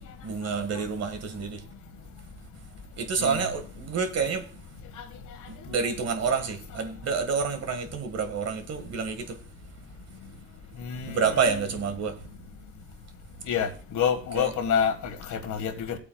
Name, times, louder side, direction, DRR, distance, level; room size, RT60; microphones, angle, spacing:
voice 1, 0.2-1.6 3.0-4.5 5.7-9.4 11.1-12.2 14.3-14.5, right 5 dB, 55° right, 1.8 m, -28 dB
voice 2, 10.8-11.5 13.5-13.7 13.9-16.0, left 7 dB, 75° left, 1.7 m, -28 dB
16.5 x 8.3 x 2.3 m
cardioid pair, 100°, 30 cm